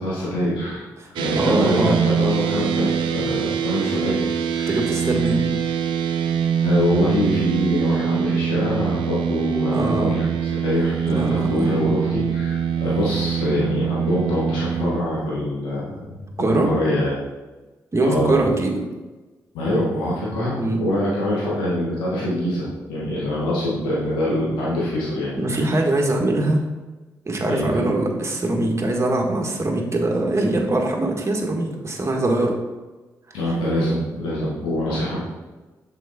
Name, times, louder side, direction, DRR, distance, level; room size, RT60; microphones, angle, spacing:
voice 1, 0.0-0.8 1.2-4.8 6.6-17.1 18.0-18.5 19.5-25.4 25.7-25.8 27.5-27.8 33.3-35.2, left 1 dB, 90° left, -6 dB, 1.6 m, -24 dB
sound 1, 1.2-15.0, right 8 dB, 80° right, 0.5 m, -23 dB
voice 2, 1.3-2.0 4.7-5.4 9.7-10.1 11.1-11.8 16.4-16.7 17.9-18.7 20.6-20.8 25.4-26.6 27.2-32.5 33.3-33.4, right 2 dB, 35° right, 1 dB, 1.6 m, -22 dB
6.4 x 4.8 x 4.1 m, 1.2 s
supercardioid pair, 45°, 8 cm